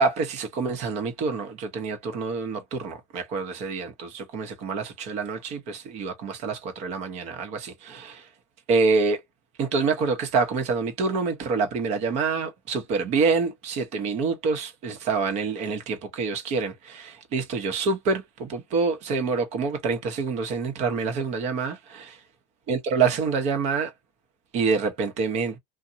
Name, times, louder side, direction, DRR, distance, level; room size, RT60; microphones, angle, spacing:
voice 1, 0.0-8.2 8.7-9.2 9.6-22.1 22.7-23.9 24.5-25.6, right 4 dB, 50° right, 1.0 m, -26 dB
2.7 x 2.2 x 2.6 m
supercardioid pair, 125°, 15 cm